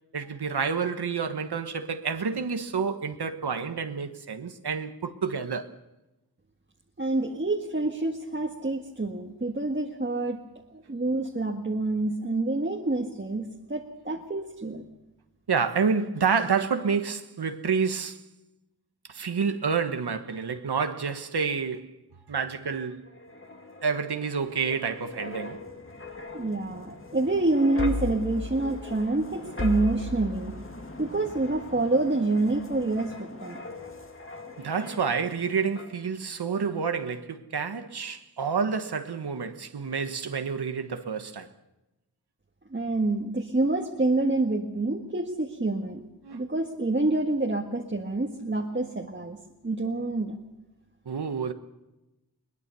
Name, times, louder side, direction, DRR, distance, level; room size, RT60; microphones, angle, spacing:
voice 1, 0.1-5.7 15.5-18.2 19.1-21.9 22.3-23.1 23.8-25.6 34.6-41.5 46.2-46.4 51.0-51.5, right 5 dB, 80° right, 1.4 m, -29 dB
voice 2, 7.0-10.4 10.7-14.8 26.3-30.6 31.0-33.6 42.7-46.0 46.3-49.4 49.6-50.4, right 2 dB, 30° right, 1.8 m, -27 dB
sound 1, 23.1-35.4 35.8-36.0, left 3 dB, 30° left, 2.2 m, -38 dB
22.0 x 20.5 x 7.0 m
wide cardioid pair, 95°, 38 cm